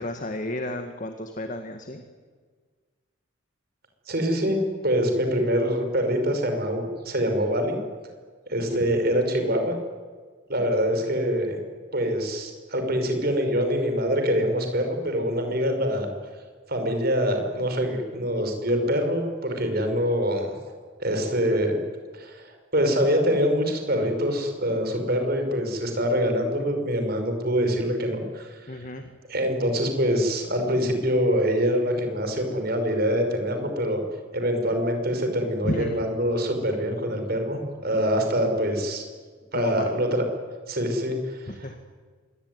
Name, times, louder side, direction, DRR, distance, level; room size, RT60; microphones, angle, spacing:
voice 1, 0.0-2.0 8.7-9.0 28.7-29.1 35.6-36.1 39.5-39.9 41.5-41.8, left 1 dB, 40° left, 6 dB, 1.9 m, -32 dB
voice 2, 4.1-4.6 4.8-7.8 8.5-9.8 10.5-11.6 11.9-16.1 16.7-20.6 21.0-21.7 22.1-28.9 29.3-34.0 34.3-39.0 39.5-40.2 40.7-41.7, equal, 50° right, 5 dB, 5.7 m, -25 dB
26.0 x 22.0 x 9.6 m, 1.5 s
head